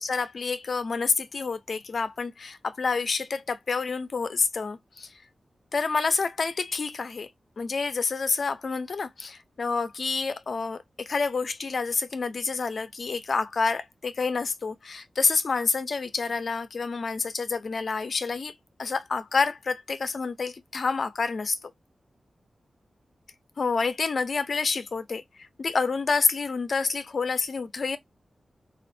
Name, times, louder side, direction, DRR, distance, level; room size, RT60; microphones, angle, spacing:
voice 1, 0.0-5.1 5.7-7.3 7.6-21.6 23.6-28.0, left 4 dB, 65° left, 0.6 m, -28 dB
4.2 x 2.5 x 2.6 m
wide cardioid pair, 80°, 0 cm